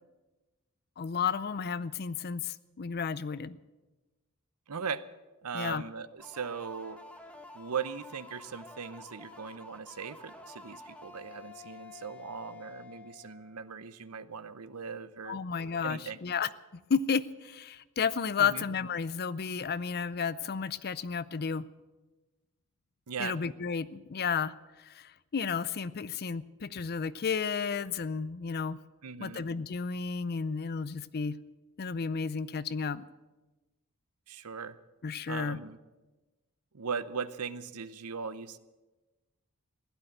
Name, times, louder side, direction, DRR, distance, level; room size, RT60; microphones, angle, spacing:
voice 1, 1.0-3.6 5.5-5.8 15.3-16.5 16.9-21.7 23.2-24.5 24.9-28.8 29.2-31.4 31.8-33.1 35.0-35.6, left 6 dB, 45° left, 17 dB, 0.5 m, -32 dB
voice 2, 4.7-5.0 5.4-7.0 7.5-15.4 15.8-16.2 18.4-18.6 23.1-23.4 29.0-29.4 34.3-34.8 35.3-35.8 36.7-38.6, right 6 dB, 80° right, 14 dB, 0.8 m, -39 dB
sound 1, 6.2-13.8, left 3 dB, 5° left, 1.6 m, -50 dB
16.0 x 11.5 x 7.8 m, 1.2 s
head